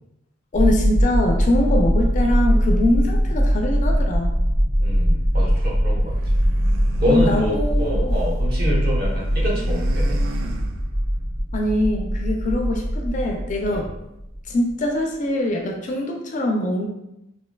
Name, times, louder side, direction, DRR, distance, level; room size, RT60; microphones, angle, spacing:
voice 1, 0.5-4.4 7.0-8.2 11.5-13.9 14.5-16.9, left 1 dB, 35° left, 1 dB, 0.4 m, -23 dB
sound 1, 0.5-14.7, equal, 25° right, 0.6 m, -21 dB
voice 2, 4.8-6.1 7.0-10.2 13.7-13.9, equal, 50° right, -5 dB, 0.9 m, -26 dB
sound 2, 6.0-8.4 8.7-11.2, right 3 dB, 80° right, 0.4 m, -38 dB
3.2 x 2.6 x 2.2 m, 0.86 s
head